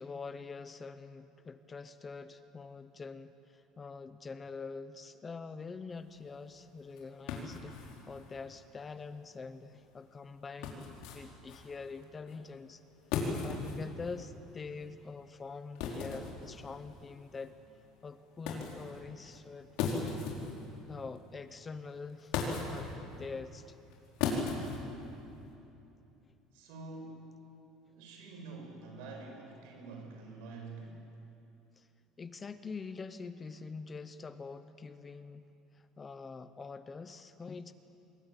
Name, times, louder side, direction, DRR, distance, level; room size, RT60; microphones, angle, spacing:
voice 1, 0.0-7.8 8.1-12.8 13.2-17.5 18.0-19.7 20.9-22.3 22.7-22.9 23.2-23.8 26.2-26.3 31.8-31.9 32.2-35.5 35.7-37.7, left 4 dB, 15° left, 12 dB, 0.7 m, -45 dB
sound 1, 5.9-25.5, left 5 dB, 65° left, 5.0 m, -40 dB
voice 2, 26.5-27.4 27.9-31.0, right 3 dB, 80° right, 2 dB, 7.9 m, -47 dB
27.0 x 21.5 x 9.2 m, 2.8 s
cardioid pair, 180°, 0 cm